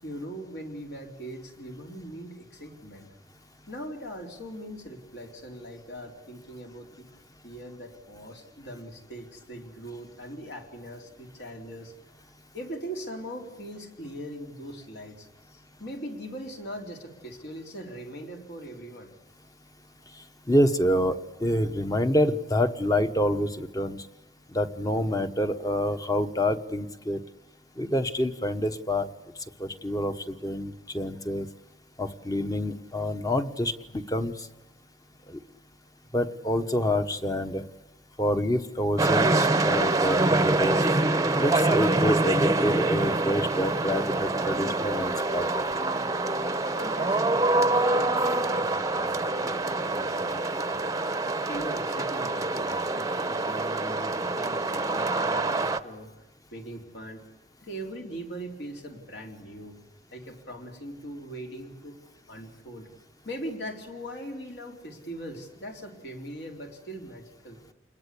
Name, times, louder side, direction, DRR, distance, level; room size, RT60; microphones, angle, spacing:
voice 1, 0.0-3.1 3.7-7.1 7.4-11.9 12.5-19.1 46.7-50.9 51.5-56.1 56.5-57.2 57.6-59.8 60.1-62.0 62.3-62.9 63.2-67.6, equal, 65° left, 2 dB, 4.1 m, -41 dB
voice 2, 20.5-24.1 24.5-27.2 27.8-29.1 29.6-31.5 32.0-34.5 35.3-35.4 36.1-37.6 38.2-40.9 41.4-45.6, equal, 20° left, 8 dB, 1.2 m, -27 dB
sound 1, 39.0-55.8, right 2 dB, 20° right, 0.9 m, -25 dB
28.5 x 21.0 x 8.5 m, 1.1 s
head